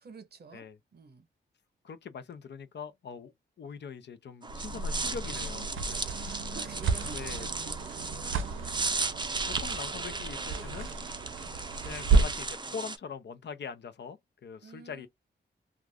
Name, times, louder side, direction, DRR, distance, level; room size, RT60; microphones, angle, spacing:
voice 1, 0.0-1.3 6.3-9.3 9.7-11.0 14.6-15.1, right 4 dB, 55° right, 0.9 m, -50 dB
voice 2, 1.8-6.0 6.5-6.7 7.1-7.5 9.5-10.9 11.8-15.1, left 6 dB, 60° left, 0.6 m, -42 dB
sound 1, 4.4-13.0, right 3 dB, 25° right, 0.6 m, -36 dB
sound 2, 4.5-12.6, right 4 dB, 90° right, 0.5 m, -32 dB
2.4 x 2.3 x 3.3 m
cardioid pair, 80°, 20 cm